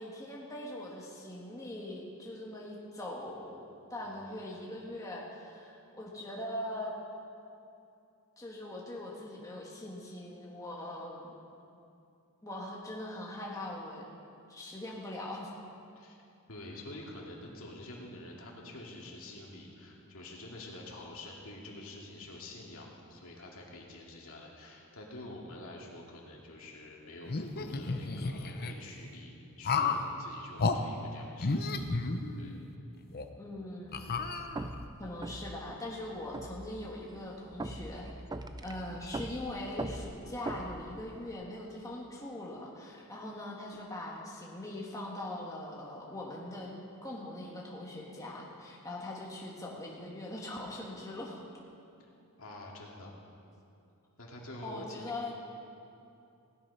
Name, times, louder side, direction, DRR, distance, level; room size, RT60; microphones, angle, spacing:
voice 1, 0.0-6.9 8.4-11.3 12.4-14.0 14.5-15.5 33.4-34.3 35.0-38.1 38.6-51.4 54.6-55.3, left 1 dB, 15° left, -3 dB, 1.5 m, -41 dB
voice 2, 4.0-4.4 16.0-16.2 16.5-31.7 32.3-32.5 52.4-53.1 54.2-55.1, left 1 dB, 65° left, -2 dB, 2.5 m, -47 dB
sound 1, 27.3-28.7 29.6-30.1 30.6-30.8 31.4-32.6 33.1-33.2 33.9-34.8, left 4 dB, 45° left, 0.8 m, -32 dB
sound 2, 34.2-41.3, right 2 dB, 20° right, 0.5 m, -42 dB
16.5 x 11.0 x 5.6 m, 2.7 s
head